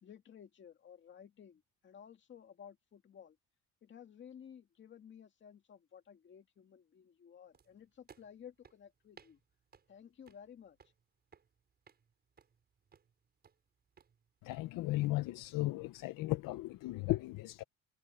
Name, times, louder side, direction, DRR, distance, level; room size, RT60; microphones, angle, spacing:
voice 1, 0.0-3.4 3.8-9.4 9.9-10.8, left 8 dB, 35° left, 2.2 m, -55 dB
sound 1, 7.5-15.1, right 6 dB, 30° right, 6.2 m, -65 dB
voice 2, 14.4-17.6, left 18 dB, 75° left, 0.8 m, -36 dB
cardioid pair, 175°, 33 cm